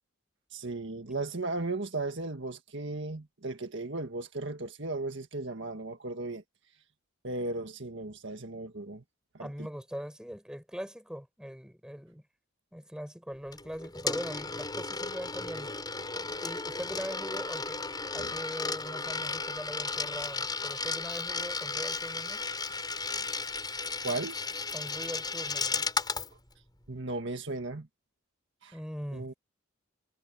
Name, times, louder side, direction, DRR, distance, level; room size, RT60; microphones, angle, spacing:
voice 1, 0.5-6.4 7.2-9.0 9.4-9.5 18.2-18.3 22.7-22.8 24.0-24.4 26.9-27.9 28.6-28.8 29.1-29.3, right 2 dB, 60° right, 1.8 m, -36 dB
voice 2, 9.4-12.2 12.7-15.7 16.4-17.8 18.1-22.4 24.7-25.9 28.7-29.3, equal, 5° right, 6.4 m, -41 dB
Coin (dropping), 13.5-26.3, left 4 dB, 20° left, 6.9 m, -34 dB
head